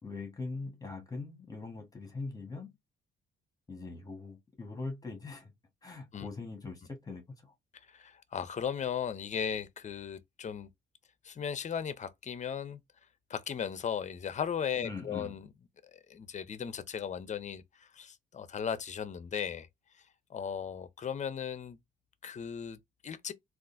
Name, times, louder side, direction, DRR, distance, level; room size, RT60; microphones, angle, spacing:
voice 1, 0.0-2.7 3.7-5.5 5.8-7.5 14.8-15.3, left 3 dB, 20° left, 1.3 m, -41 dB
voice 2, 7.7-10.7 11.2-12.8 13.3-15.5 15.9-19.7 20.3-21.8 22.2-23.3, left 7 dB, 35° left, 0.6 m, -37 dB
3.7 x 2.4 x 2.6 m
cardioid pair, 90°, 20 cm